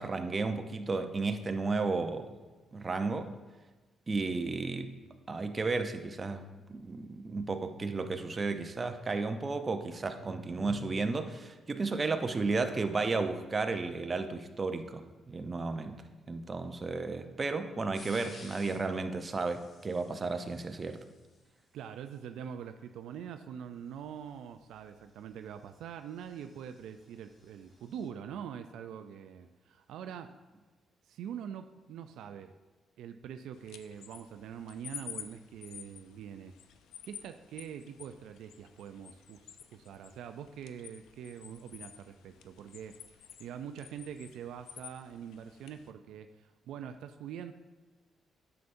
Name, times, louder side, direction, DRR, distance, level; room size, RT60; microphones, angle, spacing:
voice 1, 0.0-2.3 2.7-3.3 4.1-4.9 5.3-6.4 6.7-16.0 16.3-21.0, right 3 dB, 30° right, 7 dB, 0.6 m, -33 dB
sound 1, 17.9-18.9 19.3-21.4 24.0-28.1, left 2 dB, 45° left, 1.3 m, -56 dB
voice 2, 21.7-30.3 31.1-32.5 33.0-36.6 37.0-43.0 43.4-47.5, right 8 dB, 80° right, 8 dB, 0.3 m, -44 dB
sound 2, 33.5-45.9, left 9 dB, 80° left, 0.5 m, -51 dB
9.4 x 6.9 x 2.6 m, 1.3 s
cardioid pair, 90°, 0 cm